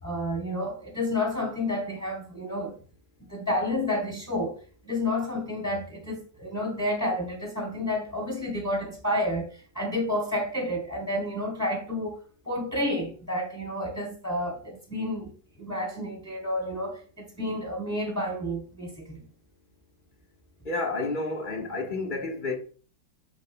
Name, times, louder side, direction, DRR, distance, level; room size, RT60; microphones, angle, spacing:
voice 1, 0.0-2.8 3.3-4.5 4.8-12.2 12.5-15.3 15.6-19.2, left 1 dB, 10° left, 3.5 m, -30 dB
voice 2, 20.6-22.6, left 3 dB, 30° left, 1.3 m, -30 dB
8.5 x 7.2 x 2.3 m
omnidirectional pair, 2.1 m